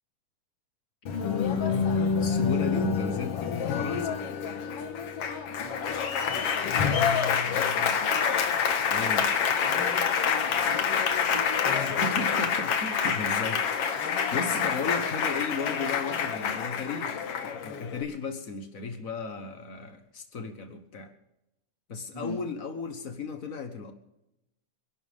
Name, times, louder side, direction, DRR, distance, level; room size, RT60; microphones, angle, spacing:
voice 1, 1.1-4.2 7.4-8.0 8.9-9.3 11.8-21.1 21.9-23.9, left 4 dB, 80° left, 7 dB, 0.7 m, -35 dB
Applause, 1.1-18.0, left 7 dB, 55° left, 2.1 m, -27 dB
voice 2, 5.5-6.7 9.6-10.9 11.3-11.9 22.1-22.4, left 1 dB, 10° left, 0 dB, 3.4 m, -43 dB
28.0 x 12.0 x 3.6 m, 0.87 s
omnidirectional pair, 3.6 m